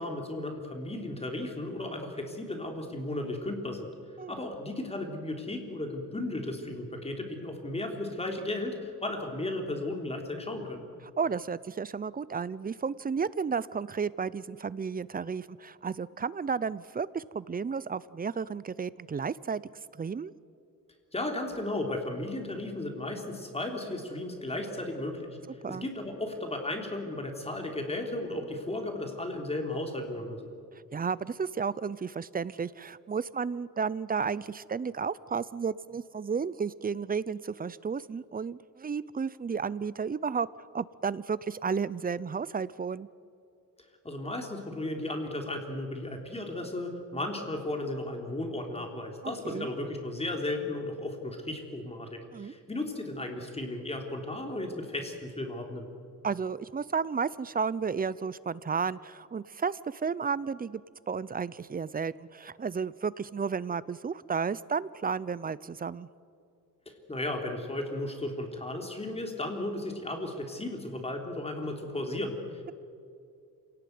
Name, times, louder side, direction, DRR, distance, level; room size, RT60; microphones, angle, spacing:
voice 1, 0.0-3.9 4.3-10.8 21.1-25.4 25.7-30.5 44.0-55.9 66.9-72.7, left 1 dB, 20° left, 3 dB, 3.5 m, -35 dB
voice 2, 11.2-19.6 19.9-20.3 25.6-25.9 30.9-40.5 40.7-43.1 49.4-49.7 52.3-52.5 56.2-60.8 61.1-66.1, right 5 dB, 25° right, 19 dB, 0.6 m, -32 dB
27.0 x 18.0 x 9.5 m, 2.5 s
wide cardioid pair, 130°, 33 cm